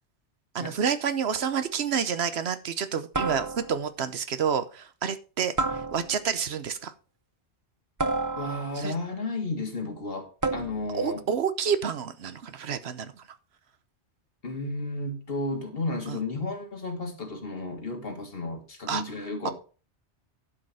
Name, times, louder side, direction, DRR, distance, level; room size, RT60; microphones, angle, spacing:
voice 1, 0.5-5.5 5.9-6.9 8.8-8.9 10.9-13.4 16.1-16.2 18.9-19.0 19.4-19.5, right 7 dB, 70° right, 1.0 m, -29 dB
sound 1, 1.3-1.7 3.1-3.9 5.6-6.4 8.0-8.9 10.4-11.0, right 3 dB, 20° right, 0.6 m, -31 dB
voice 2, 8.4-11.2 14.4-19.5, left 2 dB, 55° left, 2.2 m, -33 dB
11.5 x 5.3 x 5.5 m
omnidirectional pair, 1.1 m